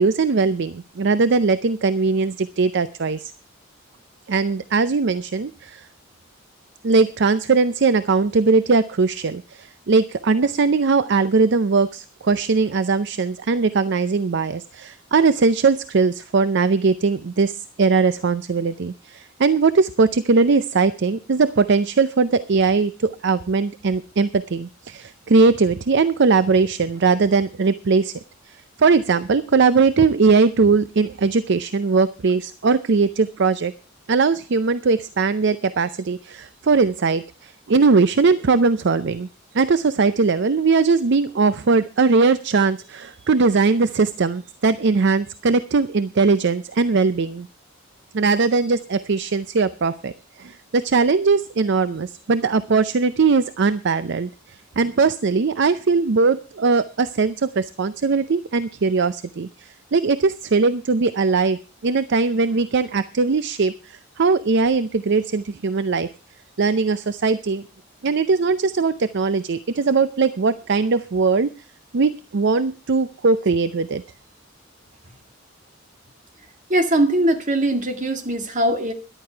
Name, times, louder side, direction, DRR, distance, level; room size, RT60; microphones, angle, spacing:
voice 1, 0.0-3.3 4.3-5.9 6.8-28.1 28.8-33.7 34.1-39.3 39.5-47.5 48.1-50.1 50.4-54.3 54.8-61.6 61.8-66.1 66.6-67.6 68.0-71.5 71.9-74.0, right 4 dB, 60° right, 14 dB, 0.5 m, -20 dB
voice 2, 76.7-78.9, right 1 dB, 40° right, 6 dB, 2.0 m, -20 dB
13.5 x 11.5 x 4.5 m, 0.33 s
head